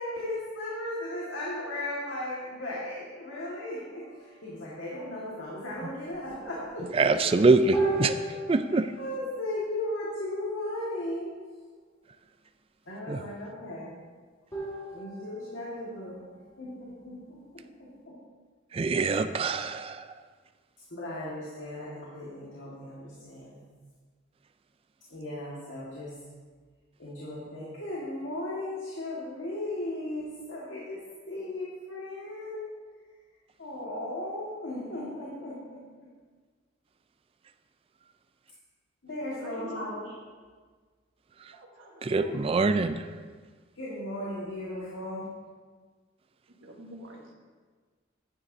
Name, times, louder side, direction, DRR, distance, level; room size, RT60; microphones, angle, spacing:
voice 1, 0.0-7.1 8.7-11.4 12.8-14.0 14.9-18.2 20.9-23.6 25.1-26.2 27.0-32.8 33.6-36.1 39.0-40.1 43.7-45.3, left 1 dB, 75° left, -6 dB, 1.7 m, -36 dB
sound 1, 3.9-4.8 5.4-5.5 5.7-5.8 6.0-6.6 7.7-10.6 14.5-17.0, right 2 dB, 20° left, 2.8 m, -36 dB
voice 2, 6.9-8.9 13.1-13.2 18.7-20.1 42.0-43.1, right 3 dB, 30° right, 9 dB, 0.3 m, -24 dB
voice 3, 39.4-39.9 41.5-42.5 46.5-47.3, right 1 dB, 90° right, -1 dB, 1.5 m, -44 dB
9.8 x 8.9 x 2.7 m, 1.5 s
head